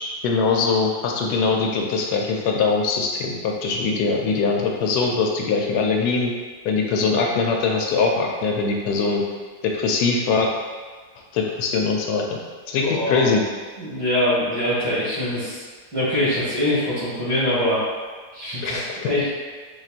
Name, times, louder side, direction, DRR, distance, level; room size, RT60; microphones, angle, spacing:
voice 1, 0.2-6.3 6.6-9.2 9.6-10.5 11.3-12.3 12.7-13.4 18.6-19.1, left 4 dB, 85° left, 0 dB, 1.1 m, -22 dB
voice 2, 12.8-13.3 13.8-15.6 15.9-17.8 18.3-19.3, left 1 dB, 15° right, -11 dB, 1.4 m, -23 dB
5.4 x 2.8 x 2.4 m, 1.5 s
omnidirectional pair, 1.7 m